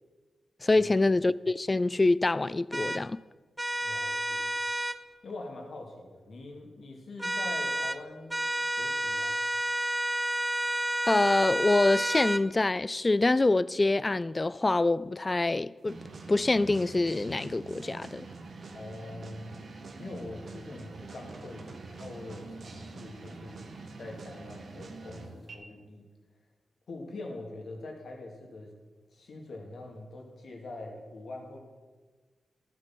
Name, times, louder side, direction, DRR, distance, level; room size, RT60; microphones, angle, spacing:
voice 1, 0.6-3.2 11.1-16.0 16.3-18.3, left 2 dB, 30° left, 0.3 m, -25 dB
sound 1, 2.7-3.0 3.6-5.0 7.2-8.0 8.3-12.4, right 1 dB, 10° right, 0.6 m, -30 dB
voice 2, 3.8-4.5 5.2-8.4 8.7-9.4 18.7-19.6 20.0-23.6 24.0-26.0 26.9-28.7 29.1-31.6, left 2 dB, 70° left, 2.5 m, -43 dB
sound 2, 15.9-25.6, right 3 dB, 65° right, 1.5 m, -45 dB
12.0 x 8.0 x 6.0 m
cardioid pair, 60°, 0 cm